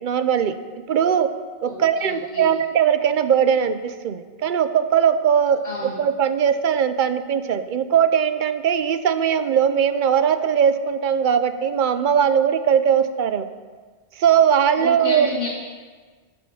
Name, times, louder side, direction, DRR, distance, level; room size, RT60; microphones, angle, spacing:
voice 1, 0.0-1.3 1.6-5.6 6.0-13.5 14.2-15.3, right 8 dB, 60° right, 11 dB, 0.7 m, -20 dB
voice 2, 1.7-2.5 5.6-5.9 14.8-15.5, left 3 dB, 85° left, -7 dB, 2.0 m, -30 dB
9.4 x 6.8 x 6.4 m, 1.5 s
omnidirectional pair, 1.0 m